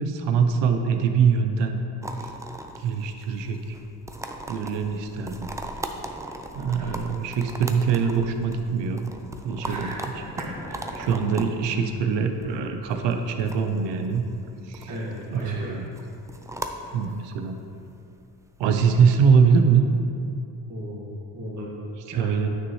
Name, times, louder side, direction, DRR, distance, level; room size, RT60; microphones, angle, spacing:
voice 1, 0.0-1.8 2.2-2.3 2.8-3.8 4.5-5.5 6.5-9.1 9.4-9.9 11.0-14.2 14.6-14.9 15.3-15.9 16.9-17.6 18.6-19.8 22.1-22.5, right 6 dB, 80° right, 6 dB, 0.8 m, -23 dB
sound 1, 2.0-19.2, right 1 dB, 10° right, 0.4 m, -39 dB
voice 2, 6.6-7.0 9.6-10.0 10.4-10.5 14.9-15.8 20.7-21.7 22.1-22.3, equal, 40° right, -5 dB, 1.8 m, -36 dB
9.3 x 6.3 x 3.2 m, 2.7 s
cardioid pair, 80°, 43 cm